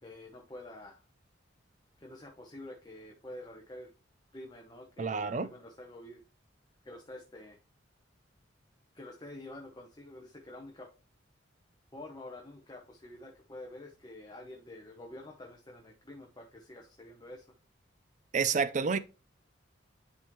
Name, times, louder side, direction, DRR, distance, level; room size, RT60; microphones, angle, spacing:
voice 1, 0.0-1.0 2.0-3.9 4.3-6.2 6.8-7.6 8.9-10.9 11.9-17.5, left 1 dB, 20° left, 0.9 m, -48 dB
voice 2, 5.0-5.5 18.3-19.0, right 5 dB, 40° right, 0.4 m, -29 dB
10.5 x 3.7 x 3.1 m
head